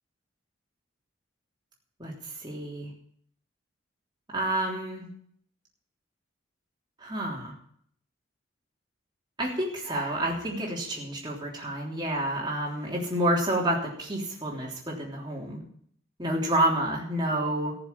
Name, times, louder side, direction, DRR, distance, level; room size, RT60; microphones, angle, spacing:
voice 1, 2.0-2.9 4.3-5.1 7.0-7.5 9.4-15.6 16.2-17.7, right 1 dB, 20° right, -2 dB, 3.4 m, -29 dB
14.5 x 7.1 x 8.5 m, 0.63 s
head